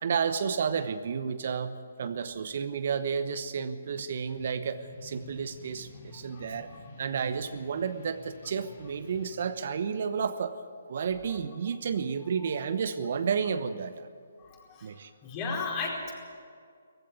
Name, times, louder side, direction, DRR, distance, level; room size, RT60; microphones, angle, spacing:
voice 1, 0.0-6.7 7.0-10.6 10.9-14.1 14.8-15.1, right 6 dB, 55° right, 11 dB, 1.0 m, -31 dB
sound 1, 4.2-9.3, left 2 dB, 55° left, 4.3 m, -50 dB
voice 2, 14.4-14.9 15.2-16.1, left 4 dB, 30° left, -1 dB, 4.7 m, -34 dB
18.5 x 15.5 x 9.4 m, 2.1 s
figure-of-eight pair, 140°, 0 cm